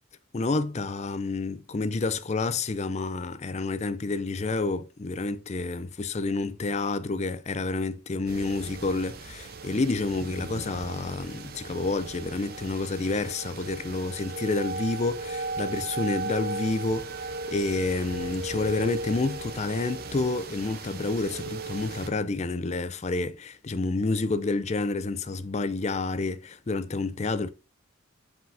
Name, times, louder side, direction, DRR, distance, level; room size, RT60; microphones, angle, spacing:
voice 1, 0.3-27.5, left 3 dB, 30° left, 0.4 m, -29 dB
sound 1, 8.3-22.1, right 3 dB, 45° right, 0.8 m, -37 dB
5.8 x 5.1 x 3.4 m
head